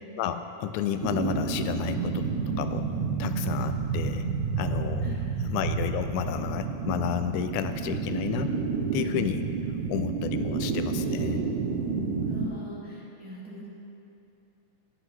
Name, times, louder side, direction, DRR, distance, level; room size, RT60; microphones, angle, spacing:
voice 1, 0.2-2.9 3.2-4.3 4.6-8.5 8.9-9.5 9.9-11.4, left 10 dB, 90° left, 9 dB, 2.0 m, -31 dB
sound 1, 1.0-12.5, right 5 dB, 90° right, 2.3 m, -30 dB
voice 2, 5.0-5.5 12.2-13.7, right 1 dB, 5° right, -8 dB, 2.0 m, -41 dB
19.5 x 8.0 x 3.2 m, 2.8 s
omnidirectional pair, 3.4 m